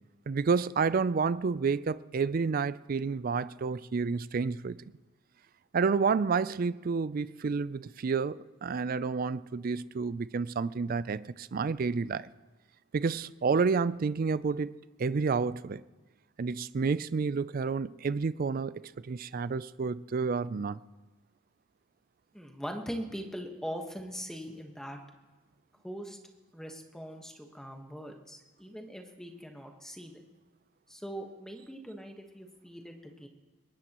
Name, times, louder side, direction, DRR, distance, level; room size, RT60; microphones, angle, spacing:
voice 1, 0.3-4.8 5.7-12.3 12.9-15.8 16.4-20.8, right 5 dB, 45° right, 0.4 m, -30 dB
voice 2, 22.3-25.0 25.8-26.2 26.5-30.2 30.9-33.3, equal, 5° left, 1.3 m, -41 dB
21.5 x 19.0 x 3.0 m
head